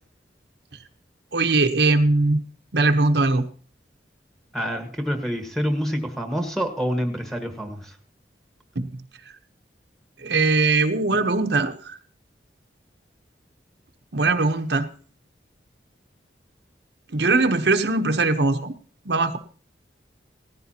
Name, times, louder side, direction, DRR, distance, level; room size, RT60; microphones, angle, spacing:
voice 1, 1.3-2.4 2.7-3.5 8.8-8.9 10.2-12.0 14.1-14.9 17.1-18.8 19.1-19.4, right 3 dB, 65° right, 6 dB, 0.9 m, -20 dB
voice 2, 4.5-8.0, equal, ahead, 5 dB, 1.4 m, -27 dB
18.0 x 14.5 x 2.9 m, 0.42 s
head